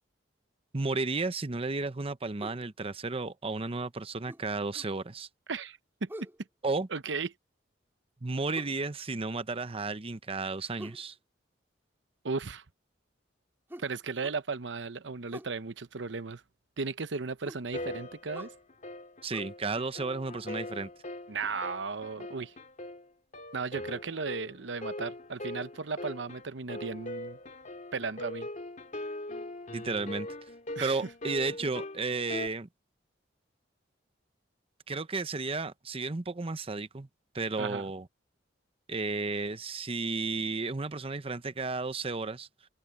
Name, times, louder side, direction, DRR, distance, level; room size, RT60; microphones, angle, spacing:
voice 1, 0.7-5.3 6.6-6.9 8.2-11.1 19.2-20.9 29.7-30.3 30.8-32.7 34.9-37.1 37.3-38.1 38.9-42.5, right 3 dB, 30° right, 0.8 m, -33 dB
sound 1, 2.4-2.7 4.3-5.0 6.1-6.4 8.5-8.8 10.8-11.1 13.7-14.4 15.3-15.6 17.4-17.7 18.3-18.6 19.3-19.4, right 1 dB, 15° right, 2.6 m, -45 dB
voice 2, 5.5-6.1 6.9-7.3 12.2-12.6 13.8-16.4 16.8-18.5 21.3-22.5 23.5-27.4 27.9-28.5 30.8-31.0 37.6-37.9, right 4 dB, 70° right, 0.8 m, -35 dB
sound 2, 17.7-32.5, left 1 dB, 45° left, 2.8 m, -41 dB
open air
head